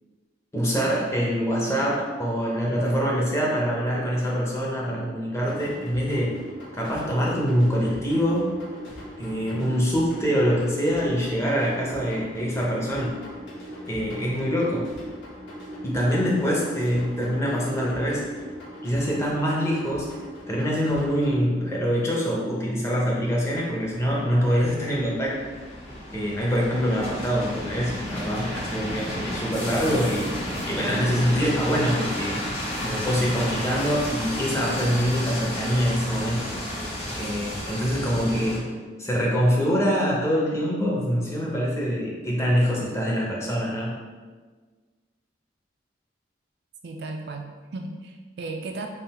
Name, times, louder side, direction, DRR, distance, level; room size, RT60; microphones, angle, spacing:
voice 1, 0.5-6.4 6.7-8.5 9.2-13.2 13.9-14.9 15.8-18.2 18.8-20.1 20.5-25.3 26.1-30.3 30.7-36.5 37.2-38.7 39.0-44.0, equal, 15° left, -4 dB, 0.7 m, -24 dB
sound 1, 5.3-21.3, equal, 75° left, 1.2 m, -41 dB
sound 2, 23.4-38.6, left 1 dB, 30° left, 1.1 m, -32 dB
voice 2, 46.8-48.9, right 3 dB, 60° right, 3 dB, 0.4 m, -35 dB
3.8 x 2.4 x 4.1 m, 1.4 s
head